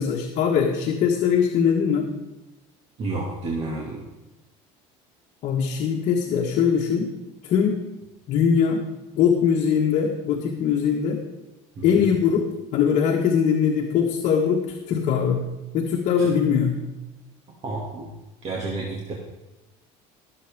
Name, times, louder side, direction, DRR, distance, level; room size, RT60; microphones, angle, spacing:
voice 1, 0.0-2.1 5.4-7.1 7.4-7.8 8.3-8.8 9.1-11.2 11.8-12.5 12.7-15.4 15.7-16.7, left 7 dB, 55° left, 0 dB, 1.5 m, -21 dB
voice 2, 3.0-4.0 11.8-12.0 16.2-16.3 17.6-18.1 18.4-19.1, right 3 dB, 45° right, -2 dB, 2.5 m, -30 dB
19.5 x 8.0 x 3.7 m, 1.1 s
cardioid pair, 125°, 15 cm